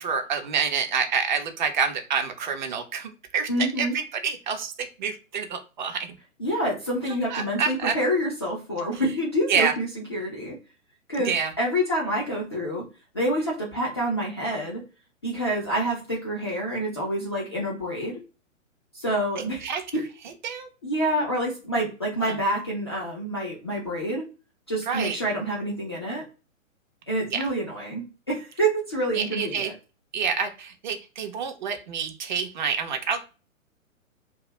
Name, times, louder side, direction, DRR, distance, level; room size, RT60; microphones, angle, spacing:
voice 1, 0.0-6.2 7.3-8.0 9.5-9.7 11.2-11.5 19.4-19.8 20.4-20.7 22.2-22.4 24.9-25.2 27.3-27.5 29.1-29.7 30.1-33.3, right 6 dB, 35° right, 6 dB, 0.5 m, -28 dB
voice 2, 3.5-3.9 6.4-10.6 11.1-12.8 13.1-14.8 15.2-18.2 18.9-19.6 19.9-20.0 20.8-24.2 24.7-26.2 27.1-29.7, right 1 dB, 20° left, -5 dB, 0.3 m, -27 dB
2.5 x 2.2 x 2.9 m, 0.34 s
figure-of-eight pair, 125°, 41 cm